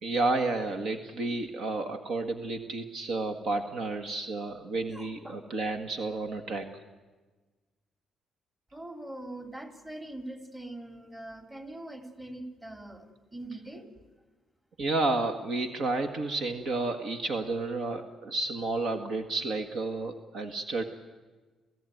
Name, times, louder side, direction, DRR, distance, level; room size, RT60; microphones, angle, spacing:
voice 1, 0.0-6.7 14.8-20.8, right 3 dB, 70° right, 7 dB, 1.7 m, -31 dB
voice 2, 4.9-5.4 8.7-13.9, right 1 dB, 20° right, 5 dB, 3.2 m, -42 dB
29.0 x 15.5 x 9.3 m, 1.3 s
cardioid pair, 90°, 0 cm